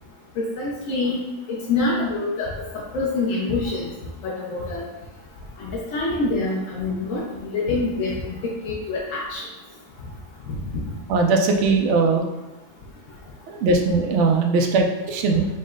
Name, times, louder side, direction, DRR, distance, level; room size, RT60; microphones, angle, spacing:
voice 1, 0.6-1.2 1.7-2.5 2.9-3.9 4.2-4.8 5.6-8.4 8.6-9.4 10.5-10.9, left 3 dB, 90° left, -4 dB, 1.1 m, -25 dB
voice 2, 11.1-12.3 13.5-15.5, right 3 dB, 75° right, 3 dB, 0.9 m, -20 dB
5.2 x 2.1 x 3.7 m, 1.1 s
omnidirectional pair, 1.3 m